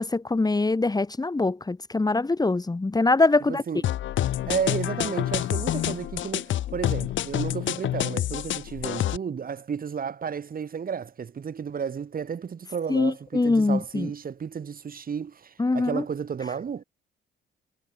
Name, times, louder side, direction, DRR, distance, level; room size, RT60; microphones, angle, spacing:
voice 1, 0.0-3.6 12.9-14.1 15.6-16.0, left 3 dB, 20° left, 2.9 m, -23 dB
voice 2, 3.5-3.9 4.5-16.8, right 7 dB, 45° right, 4.2 m, -32 dB
sound 1, 3.8-9.2, left 12 dB, 70° left, 1.5 m, -28 dB
cardioid pair, 90°, 20 cm